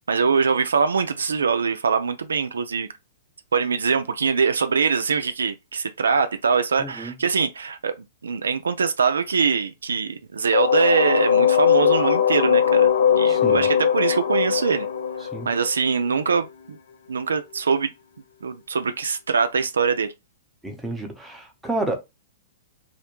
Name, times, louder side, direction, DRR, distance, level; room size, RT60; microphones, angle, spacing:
voice 1, 0.1-2.9 3.5-8.0 8.2-14.9 15.5-16.8 17.1-17.9 18.4-20.1, right 5 dB, 85° right, 0.3 m, -23 dB
voice 2, 6.8-7.1 13.3-13.7 15.3-15.5 20.6-22.0, right 2 dB, 5° right, 0.7 m, -30 dB
sound 1, 10.5-16.2, left 8 dB, 75° left, 0.3 m, -20 dB
2.4 x 2.1 x 2.9 m
hypercardioid pair, 120°, 0 cm